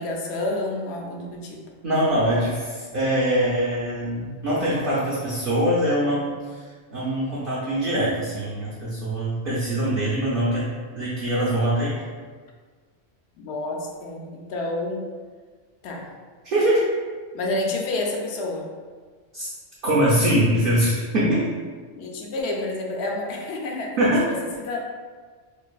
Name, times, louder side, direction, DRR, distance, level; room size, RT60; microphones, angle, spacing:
voice 1, 0.0-1.6 13.4-15.0 15.8-16.0 17.3-18.7 22.0-24.0 24.4-24.8, left 2 dB, 70° left, 0 dB, 0.8 m, -29 dB
voice 2, 1.8-6.6 6.9-10.7 11.0-11.9 16.4-16.9 19.3-19.5 19.8-21.4 24.0-24.3, right 1 dB, 55° right, -8 dB, 0.7 m, -23 dB
4.5 x 2.4 x 2.3 m, 1.5 s
omnidirectional pair, 1.2 m